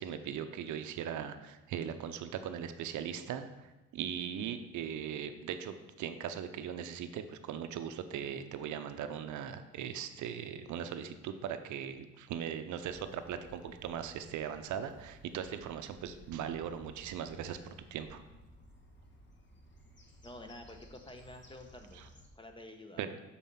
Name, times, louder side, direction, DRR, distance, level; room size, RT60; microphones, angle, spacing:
voice 1, 0.0-18.2 22.0-22.1 23.0-23.1, right 8 dB, 75° right, 9 dB, 0.6 m, -39 dB
sound 1, 12.8-22.3, equal, 40° left, 1.2 m, -57 dB
voice 2, 20.2-22.0 22.3-23.1, left 1 dB, 15° left, 5 dB, 0.9 m, -49 dB
7.3 x 4.2 x 5.5 m, 1.1 s
cardioid pair, 90°, 30 cm